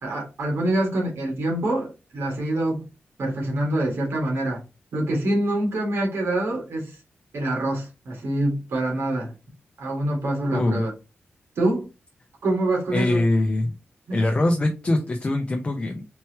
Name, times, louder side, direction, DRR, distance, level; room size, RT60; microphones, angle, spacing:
voice 1, 0.0-2.9 3.2-4.6 4.9-7.0 7.3-9.3 9.8-10.9 11.6-11.9 12.4-13.2 14.1-14.2, right 1 dB, 80° right, 2.0 m, -25 dB
voice 2, 10.5-10.8 12.9-13.7 14.1-16.0, left 2 dB, 30° left, 0.6 m, -23 dB
4.4 x 3.0 x 2.9 m
wide cardioid pair, 125°, 4 cm